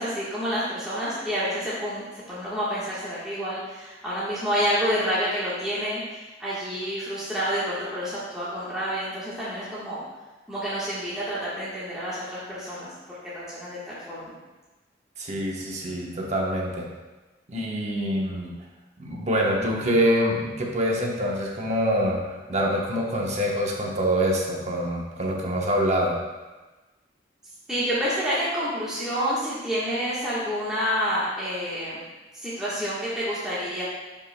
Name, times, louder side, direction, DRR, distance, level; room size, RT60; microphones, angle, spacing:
voice 1, 0.0-10.0 10.5-14.4 27.7-32.1 32.3-33.8, equal, 5° right, -11 dB, 1.3 m, -29 dB
voice 2, 15.2-16.9 17.5-18.5 19.0-26.2, equal, 35° right, -1 dB, 1.0 m, -25 dB
10.0 x 5.3 x 2.2 m, 1.2 s
head